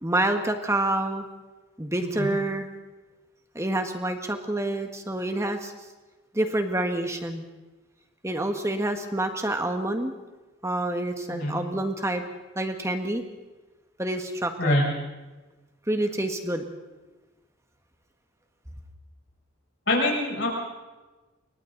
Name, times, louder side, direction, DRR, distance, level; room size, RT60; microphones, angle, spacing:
voice 1, 0.0-1.2 1.8-2.7 3.5-5.7 6.3-7.4 8.2-10.1 10.6-12.2 12.5-13.2 14.0-14.8 15.9-16.6, right 1 dB, 15° right, 6 dB, 1.6 m, -27 dB
voice 2, 2.0-2.3 11.3-11.6 14.6-14.9 19.9-20.5, left 1 dB, 55° left, -3 dB, 7.4 m, -24 dB
28.0 x 23.5 x 4.0 m, 1.2 s
head